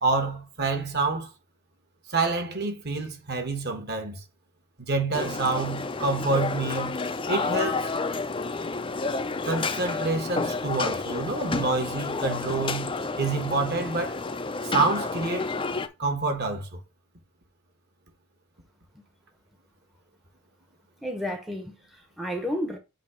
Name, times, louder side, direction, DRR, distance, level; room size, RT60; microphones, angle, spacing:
voice 1, 0.0-1.3 2.1-4.2 4.8-6.9 7.3-7.9 9.4-12.9 13.2-14.2 14.6-15.5 16.0-16.8, right 3 dB, 45° right, 1.5 m, -27 dB
sound 1, 5.1-15.9, left 3 dB, 25° left, 0.5 m, -30 dB
voice 2, 21.0-22.8, equal, ahead, 0.8 m, -32 dB
7.4 x 2.9 x 5.7 m
head